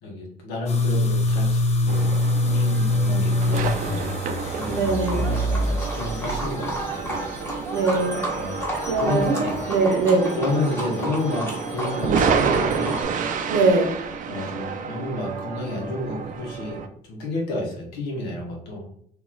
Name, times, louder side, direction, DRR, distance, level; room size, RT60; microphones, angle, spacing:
voice 1, 0.0-2.1 2.4-4.1 4.5-7.2 8.3-8.6 9.0-9.6 10.4-13.0 14.3-16.8 17.1-18.8, left 2 dB, 90° left, -1 dB, 1.3 m, -30 dB
sound 1, 0.7-9.8, left 1 dB, 40° left, 0.7 m, -24 dB
sound 2, 1.9-16.9, right 6 dB, 50° right, 0.5 m, -30 dB
Livestock farm animals working animals, 4.4-13.0, right 1 dB, 15° left, 1.4 m, -32 dB
voice 2, 4.7-5.2 7.7-8.2 8.9-10.4 13.5-13.9, right 3 dB, 80° right, 5 dB, 0.8 m, -21 dB
2.9 x 2.9 x 3.9 m, 0.65 s
cardioid pair, 110°, 17 cm